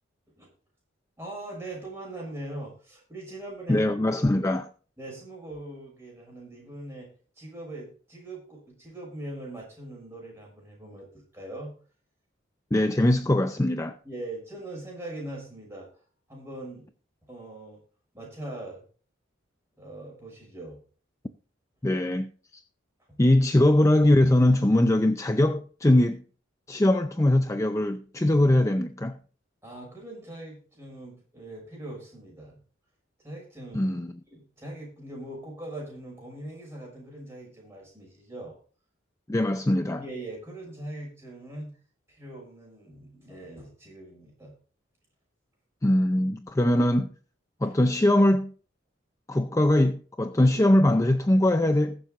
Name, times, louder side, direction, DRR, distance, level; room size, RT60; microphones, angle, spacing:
voice 1, 1.2-3.9 5.0-7.1 7.3-11.7 14.0-15.9 16.3-16.9 17.3-17.8 18.1-18.8 19.8-20.8 23.1-23.2 29.6-32.6 33.2-34.0 34.3-38.6 39.9-41.7 42.1-44.5, right 1 dB, 15° right, 6.3 m, -41 dB
voice 2, 3.7-4.7 12.7-14.0 21.8-22.3 23.2-26.2 26.7-29.2 33.7-34.1 39.3-40.0 45.8-47.1 47.6-48.5 49.3-52.0, left 1 dB, 15° left, 0.5 m, -21 dB
20.5 x 7.3 x 2.5 m
head